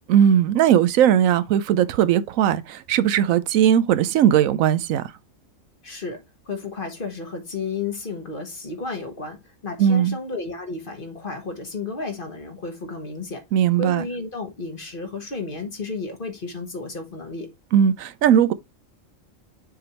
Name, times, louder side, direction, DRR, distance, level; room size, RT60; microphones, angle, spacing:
voice 1, 0.1-5.1 9.8-10.2 13.5-14.0 17.7-18.5, right 9 dB, 85° right, 1.0 m, -18 dB
voice 2, 5.8-13.4 13.8-17.5, left 3 dB, 40° left, 1.5 m, -32 dB
6.9 x 3.4 x 4.3 m
omnidirectional pair, 1.4 m